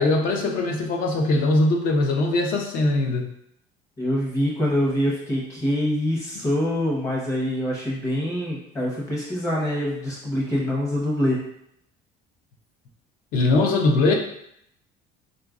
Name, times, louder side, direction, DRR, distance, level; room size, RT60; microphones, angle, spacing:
voice 1, 0.0-3.3 13.3-14.2, left 2 dB, 55° left, 3 dB, 0.5 m, -21 dB
voice 2, 4.0-11.4, left 1 dB, 20° left, -4 dB, 0.8 m, -25 dB
3.8 x 2.4 x 2.4 m, 0.73 s
cardioid pair, 165°, 17 cm